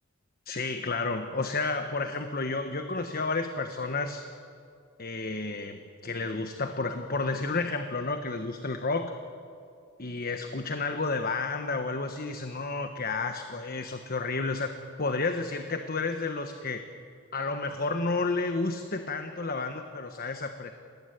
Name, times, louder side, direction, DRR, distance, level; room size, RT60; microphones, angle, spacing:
voice 1, 0.5-4.2 5.0-9.1 10.0-14.7 15.0-16.8 17.3-20.7, left 3 dB, 45° left, 7 dB, 1.3 m, -31 dB
27.5 x 19.0 x 9.9 m, 2.4 s
head